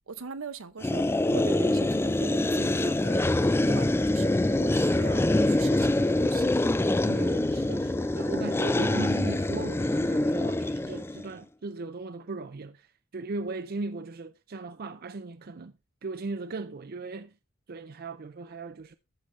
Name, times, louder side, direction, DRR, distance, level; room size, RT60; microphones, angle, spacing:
voice 1, 0.1-6.5, right 5 dB, 75° right, 0.8 m, -41 dB
sound 1, 0.8-11.3, left 1 dB, 10° left, 0.4 m, -25 dB
voice 2, 7.1-12.9 13.1-15.7 16.0-17.3 17.7-18.9, right 3 dB, 45° right, 0.5 m, -37 dB
14.0 x 5.2 x 3.2 m
head